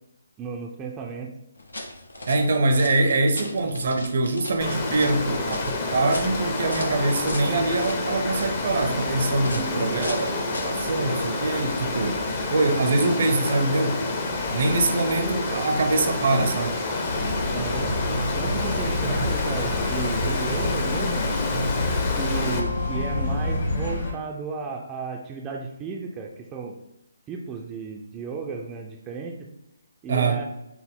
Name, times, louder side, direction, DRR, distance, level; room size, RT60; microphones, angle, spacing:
voice 1, 0.4-1.3 9.5-10.2 17.5-17.9 18.4-21.3 22.2-26.8 27.3-29.4 30.0-30.4, right 4 dB, 15° right, 0 dB, 0.4 m, -34 dB
sound 1, 1.6-10.9, left 1 dB, 85° left, 0.8 m, -39 dB
voice 2, 2.3-14.0 14.5-16.8 30.1-30.4, right 2 dB, 55° right, 6 dB, 0.6 m, -24 dB
Water, 4.6-22.6, left 2 dB, 30° left, 0.7 m, -28 dB
sound 2, 17.1-24.1, left 2 dB, 45° left, 1.3 m, -27 dB
5.9 x 2.0 x 3.6 m, 0.87 s
figure-of-eight pair, 150°, 0 cm